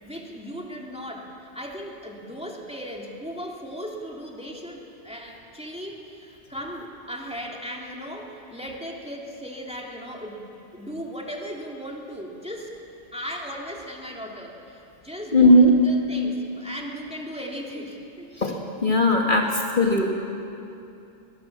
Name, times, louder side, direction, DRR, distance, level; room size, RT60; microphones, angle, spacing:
voice 1, 0.0-12.7 13.1-18.3 19.2-19.5, equal, 5° right, -1 dB, 2.6 m, -37 dB
voice 2, 15.3-15.7 18.4-18.6 18.8-19.4 19.8-20.1, left 1 dB, 45° left, 1 dB, 1.7 m, -17 dB
22.0 x 18.5 x 7.3 m, 2.7 s
omnidirectional pair, 1.2 m